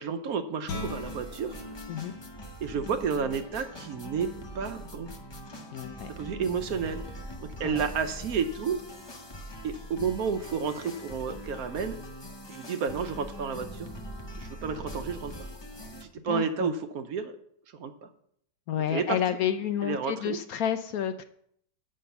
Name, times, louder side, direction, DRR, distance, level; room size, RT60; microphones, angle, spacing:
voice 1, 0.0-1.5 2.6-4.3 4.5-5.1 6.2-7.0 7.4-8.8 9.6-12.0 12.5-13.9 14.4-15.5 16.0-17.4 17.7-18.1 18.9-19.2 19.8-20.4, right 6 dB, 65° right, 8 dB, 1.1 m, -31 dB
Guitar, 0.6-6.2, left 3 dB, 90° left, 1.8 m, -44 dB
sound 1, 0.7-16.0, equal, 30° left, 0.5 m, -42 dB
voice 2, 5.7-6.1 7.6-7.8 16.3-16.7 18.7-21.2, left 9 dB, 70° left, 10 dB, 0.9 m, -30 dB
7.7 x 5.6 x 6.8 m, 0.69 s
omnidirectional pair, 1.8 m